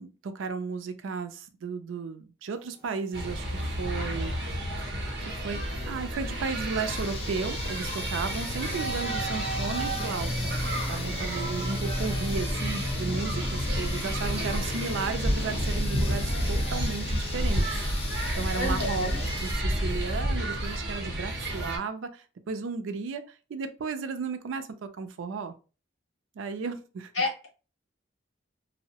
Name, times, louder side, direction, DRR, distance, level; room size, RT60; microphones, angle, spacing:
voice 1, 0.0-4.3 5.2-5.6 5.9-10.6 10.9-17.7 18.3-19.1 19.4-25.5 26.4-27.1, right 5 dB, 80° right, 9 dB, 0.4 m, -34 dB
sound 1, 2.5-16.7, left 1 dB, 20° right, 0.6 m, -45 dB
sound 2, 3.1-21.8, equal, 60° right, 0.8 m, -30 dB
sound 3, 6.9-19.5, left 4 dB, 30° left, 0.3 m, -40 dB
voice 2, 18.5-19.2 27.1-27.5, left 2 dB, 65° left, 0 dB, 0.8 m, -30 dB
2.6 x 2.0 x 2.8 m, 0.34 s
head